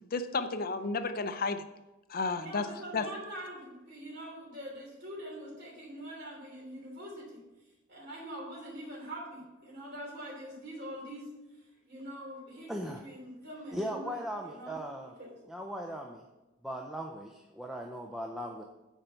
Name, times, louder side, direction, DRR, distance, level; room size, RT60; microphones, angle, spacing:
voice 1, 0.1-1.6 2.1-2.7 2.9-3.1, left 4 dB, 45° left, 9 dB, 0.5 m, -32 dB
voice 2, 2.3-7.4 7.9-11.3 11.9-12.7 13.0-15.3, right 1 dB, 50° right, -3 dB, 3.2 m, -44 dB
voice 3, 12.7-13.0 13.7-15.1 15.5-16.2 16.6-18.6, equal, ahead, 1 dB, 0.5 m, -38 dB
9.1 x 4.5 x 5.6 m, 1.1 s
head